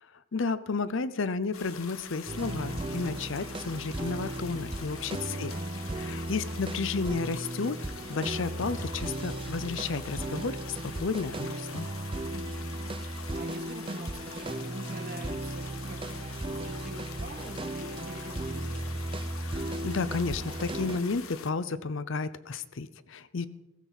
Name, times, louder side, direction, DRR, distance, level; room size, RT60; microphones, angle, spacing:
voice 1, 0.0-5.5 5.9-7.8 8.1-11.9 19.4-23.5, left 4 dB, 60° left, 15 dB, 0.6 m, -32 dB
sound 1, 1.5-21.5, left 7 dB, 80° left, 1.2 m, -46 dB
sound 2, 2.3-21.0, right 1 dB, 25° right, 0.6 m, -36 dB
voice 2, 5.2-5.6 6.3-6.9 12.3-19.0 23.3-23.5, right 1 dB, 45° right, 3 dB, 2.3 m, -46 dB
17.0 x 15.0 x 4.1 m, 0.96 s
head